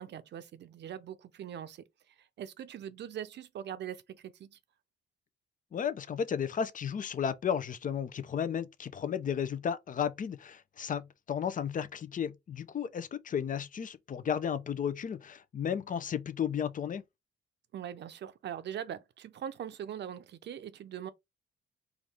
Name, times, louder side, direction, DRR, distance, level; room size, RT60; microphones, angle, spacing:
voice 1, 0.0-1.8 2.4-4.6 17.7-21.1, right 9 dB, 60° right, 0.7 m, -41 dB
voice 2, 5.7-17.0, left 8 dB, 40° left, 0.6 m, -33 dB
4.5 x 2.6 x 3.4 m
cardioid pair, 90°, 20 cm